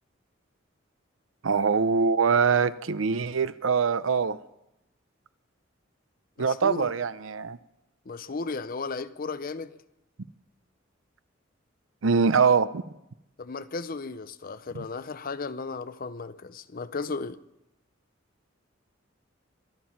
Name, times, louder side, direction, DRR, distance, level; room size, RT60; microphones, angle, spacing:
voice 1, 1.4-4.4 6.4-7.6 12.0-12.8 14.7-14.8, right 5 dB, 80° right, 0.6 m, -23 dB
voice 2, 6.4-6.9 8.1-9.8 13.4-17.4, left 4 dB, 45° left, 0.6 m, -35 dB
23.5 x 9.4 x 5.9 m
head